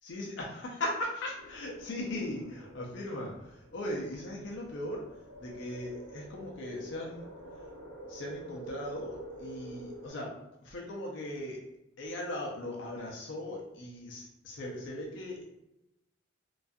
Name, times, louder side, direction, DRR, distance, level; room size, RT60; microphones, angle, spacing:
voice 1, 0.0-7.7 8.1-11.6 12.0-15.4, left 1 dB, 65° left, -1 dB, 0.4 m, -39 dB
sound 1, 1.4-10.1, right 1 dB, 75° right, 0.5 m, -49 dB
2.3 x 2.3 x 2.5 m, 0.90 s
head